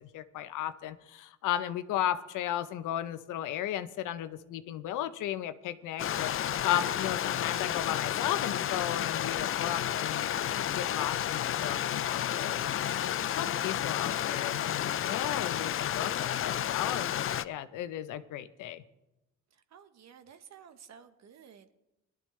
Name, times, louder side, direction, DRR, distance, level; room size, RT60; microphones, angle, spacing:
voice 1, 0.0-18.8, left 11 dB, 85° left, 12 dB, 0.8 m, -35 dB
Stream, 6.0-17.5, left 10 dB, 45° left, 0.4 m, -31 dB
voice 2, 19.5-21.7, right 8 dB, 60° right, 9 dB, 1.2 m, -54 dB
19.0 x 12.0 x 3.2 m, 0.93 s
cardioid pair, 90°, 30 cm